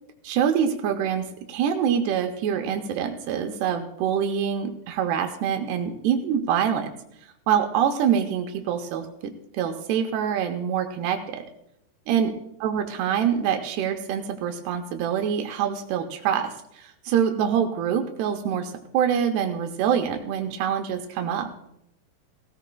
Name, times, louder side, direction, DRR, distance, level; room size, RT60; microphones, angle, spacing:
voice 1, 0.2-6.9 7.5-11.4 12.1-12.3 12.6-21.5, right 8 dB, 80° right, 6 dB, 2.8 m, -25 dB
18.0 x 16.5 x 2.2 m, 0.79 s
omnidirectional pair, 4.7 m